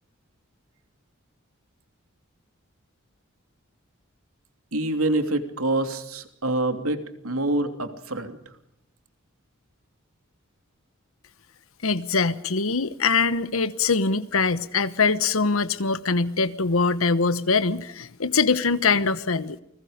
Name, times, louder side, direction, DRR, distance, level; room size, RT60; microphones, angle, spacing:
voice 1, 4.7-8.4, right 2 dB, 85° right, 7 dB, 3.0 m, -26 dB
voice 2, 11.8-19.6, left 4 dB, 75° left, 13 dB, 1.1 m, -23 dB
29.5 x 21.0 x 5.1 m, 0.78 s
head